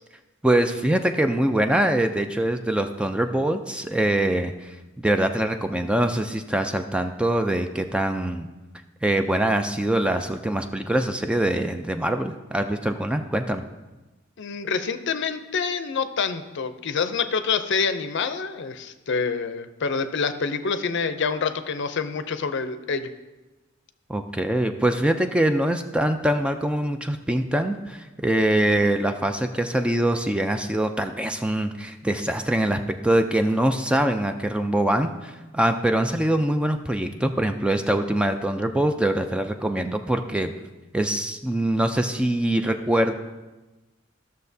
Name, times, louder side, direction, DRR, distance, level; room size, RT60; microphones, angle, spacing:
voice 1, 0.4-8.5 9.0-13.6 24.1-40.5 40.9-43.1, right 1 dB, 5° right, 6 dB, 0.3 m, -23 dB
voice 2, 14.4-23.1, left 5 dB, 60° left, 10 dB, 0.5 m, -27 dB
13.5 x 6.5 x 2.7 m, 1.1 s
head